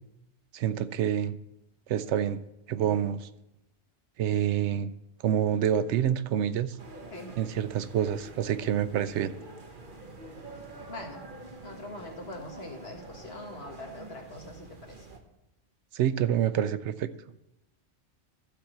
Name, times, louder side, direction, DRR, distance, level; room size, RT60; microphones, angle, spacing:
voice 1, 0.5-1.4 1.9-2.4 2.7-3.3 4.2-4.9 5.2-6.8 7.4-9.3 15.9-17.1, right 9 dB, 90° right, 13 dB, 0.9 m, -27 dB
sound 1, 6.8-15.2, right 2 dB, 50° right, 1.2 m, -46 dB
voice 2, 10.9-11.2 11.6-15.0, left 2 dB, 65° left, 2 dB, 1.7 m, -42 dB
12.0 x 4.4 x 7.2 m, 0.90 s
omnidirectional pair, 1.1 m